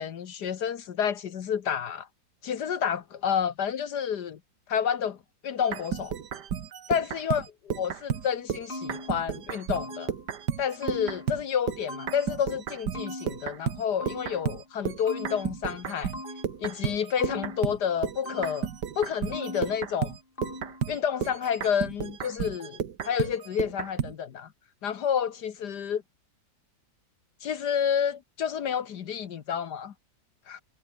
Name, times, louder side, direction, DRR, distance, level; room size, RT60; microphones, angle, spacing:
voice 1, 0.0-2.1 2.4-4.4 4.7-5.2 5.4-6.1 6.9-10.1 10.6-16.1 16.6-18.7 19.0-20.2 20.9-24.5 24.8-26.0 27.4-29.9 30.5-30.6, left 8 dB, 70° left, 1.7 m, -29 dB
sound 1, 5.6-11.4 11.7-24.1, right 8 dB, 75° right, 2.0 m, -33 dB
sound 2, 8.2-10.3 10.8-12.5 12.9-14.6 15.1-16.7 17.2-18.8 19.3-20.1 20.4-21.0, left 2 dB, 30° left, 5.1 m, -41 dB
omnidirectional pair, 1.9 m